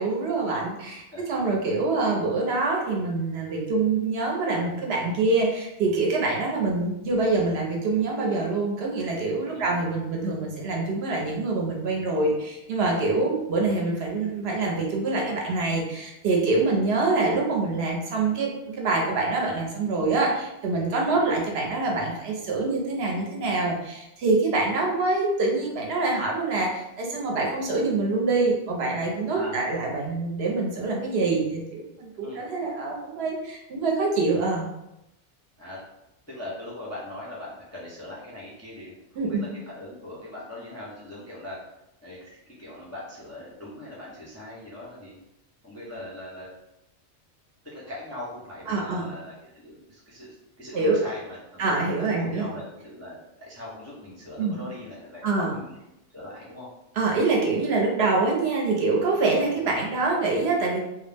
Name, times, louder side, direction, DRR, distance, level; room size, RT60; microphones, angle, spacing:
voice 1, 0.0-1.0 1.3-34.7 39.2-39.4 48.7-49.1 50.7-51.0 51.6-52.5 54.4-54.5 55.2-55.5 57.0-60.8, right 3 dB, 65° right, -1 dB, 0.8 m, -25 dB
voice 2, 36.3-41.6 42.0-45.2 45.6-46.5 47.6-51.7 52.1-55.8 56.1-56.7, left 1 dB, 25° left, -7 dB, 0.4 m, -40 dB
2.3 x 2.0 x 3.2 m, 0.90 s
omnidirectional pair, 1.2 m